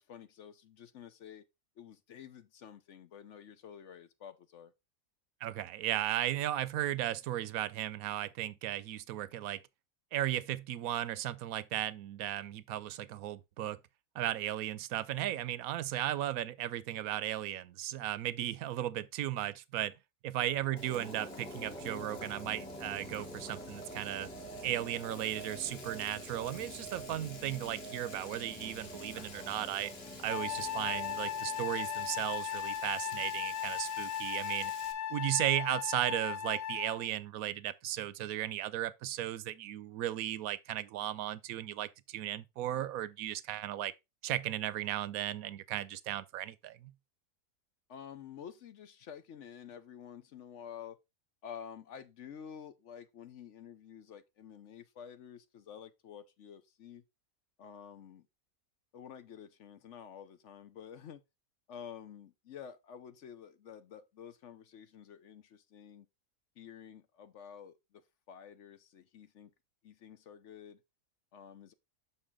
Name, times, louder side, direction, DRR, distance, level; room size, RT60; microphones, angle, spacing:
voice 1, 0.0-1.4 1.8-4.7 20.4-20.6 47.9-51.0 51.4-57.0 57.6-58.3 58.9-61.2 61.7-66.1 66.6-69.5 69.8-70.8 71.3-71.7, left 8 dB, 65° left, 0.9 m, -50 dB
voice 2, 5.4-9.6 10.1-13.8 14.1-19.9 20.2-24.3 24.6-29.9 30.2-34.7 35.1-43.9 44.2-46.9, right 13 dB, 80° right, 1.0 m, -35 dB
sound 1, 20.5-33.1, right 1 dB, 5° left, 1.0 m, -47 dB
Frying (food), 20.8-34.9, left 4 dB, 50° left, 1.3 m, -52 dB
Wind instrument woodwind instrument, 30.3-37.1, left 9 dB, 85° left, 1.2 m, -37 dB
6.8 x 5.7 x 3.6 m
omnidirectional pair, 1.5 m